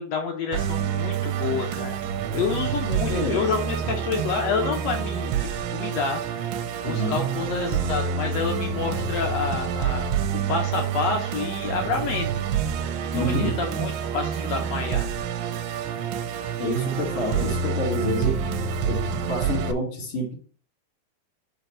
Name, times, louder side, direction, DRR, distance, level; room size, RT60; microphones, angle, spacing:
voice 1, 0.0-2.0 2.3-5.3 5.7-6.5 6.8-12.3 13.1-15.0, left 5 dB, 80° left, 1.5 m, -28 dB
Musical instrument, 0.5-19.7, right 7 dB, 80° right, 2.4 m, -28 dB
voice 2, 3.1-3.5 6.8-7.2 13.1-13.6 16.6-18.6 18.9-20.3, equal, 40° left, 2.5 m, -28 dB
5.7 x 5.0 x 4.3 m
omnidirectional pair, 4.1 m